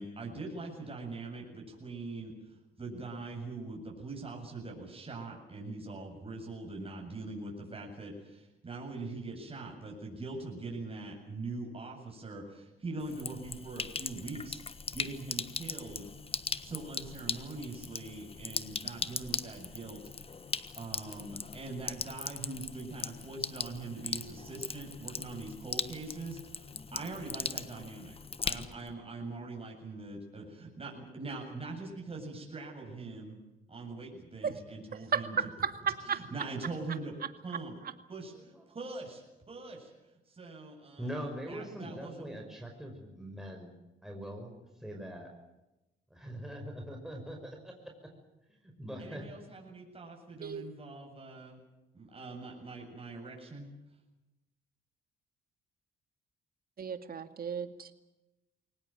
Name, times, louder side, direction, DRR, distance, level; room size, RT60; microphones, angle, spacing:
voice 1, 0.0-2.3 2.8-14.6 14.9-16.1 16.6-20.0 20.7-28.2 28.4-33.4 33.7-35.4 36.0-37.1 37.4-37.7 38.1-39.9 40.3-42.4 49.0-51.6 51.9-53.7, right 3 dB, 30° right, 0 dB, 7.8 m, -42 dB
Sink (filling or washing), 13.0-28.9, left 4 dB, 30° left, 1.3 m, -39 dB
voice 2, 35.1-36.2 50.4-50.7 56.8-57.9, right 6 dB, 50° right, 9 dB, 2.2 m, -33 dB
voice 3, 38.3-38.6 41.0-43.7 44.0-45.3 46.1-47.7 48.6-49.2, equal, ahead, 1 dB, 5.6 m, -42 dB
23.5 x 19.0 x 9.2 m, 0.97 s
cardioid pair, 90°, 20 cm